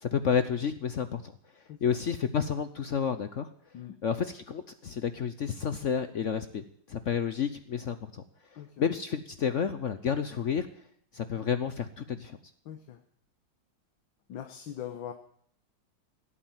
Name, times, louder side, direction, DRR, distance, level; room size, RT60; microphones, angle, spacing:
voice 1, 0.0-3.5 4.0-8.2 8.8-10.7 11.1-12.4, left 7 dB, 55° left, 11 dB, 0.8 m, -30 dB
voice 2, 12.7-13.0 14.3-15.1, left 10 dB, 85° left, 7 dB, 1.8 m, -41 dB
17.0 x 8.7 x 9.1 m, 0.63 s
omnidirectional pair, 2.0 m